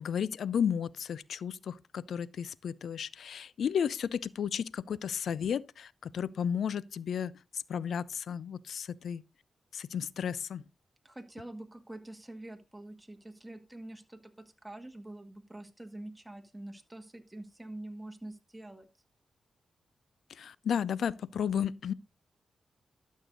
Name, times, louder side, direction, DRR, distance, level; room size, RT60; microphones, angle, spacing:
voice 1, 0.0-9.2 9.7-10.6 20.3-21.9, left 8 dB, 80° left, 0.5 m, -33 dB
voice 2, 11.0-14.2 14.6-18.9, right 1 dB, 10° right, 2.0 m, -46 dB
12.0 x 6.5 x 3.8 m
cardioid pair, 55°, 0 cm